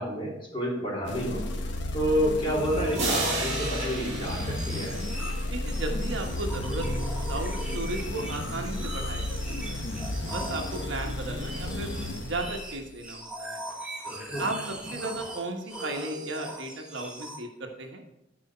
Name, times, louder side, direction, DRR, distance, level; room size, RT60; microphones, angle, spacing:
voice 1, 0.0-1.4 1.9-5.0 14.0-14.4, equal, 25° left, -5 dB, 3.4 m, -29 dB
sound 1, 1.0-13.0, left 1 dB, 65° left, 1.0 m, -33 dB
sound 2, 2.5-17.4, right 1 dB, 5° right, 1.3 m, -40 dB
sound 3, 2.9-5.6, right 2 dB, 35° right, 2.5 m, -32 dB
voice 2, 5.5-9.4 9.7-9.9 10.3-11.9 12.2-13.6 14.4-18.0, right 2 dB, 65° right, 2 dB, 1.3 m, -35 dB
13.0 x 5.0 x 4.3 m, 0.89 s
head